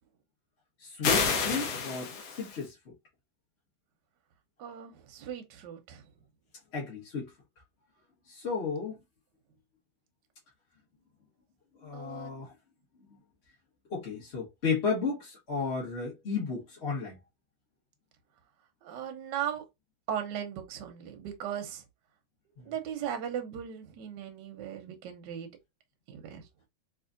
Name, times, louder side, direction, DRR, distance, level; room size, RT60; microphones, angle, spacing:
voice 1, 0.8-2.9 6.7-7.3 8.3-9.0 11.8-12.5 13.1-13.2 13.9-17.2 22.6-22.7, left 5 dB, 35° left, 1.2 m, -33 dB
sound 1, 1.0-2.6, left 5 dB, 60° left, 1.1 m, -29 dB
voice 2, 4.6-6.0 11.9-12.4 18.8-19.6 20.1-21.8 22.7-25.5 26.1-26.4, right 9 dB, 65° right, 1.2 m, -37 dB
3.5 x 3.0 x 2.5 m
omnidirectional pair, 2.3 m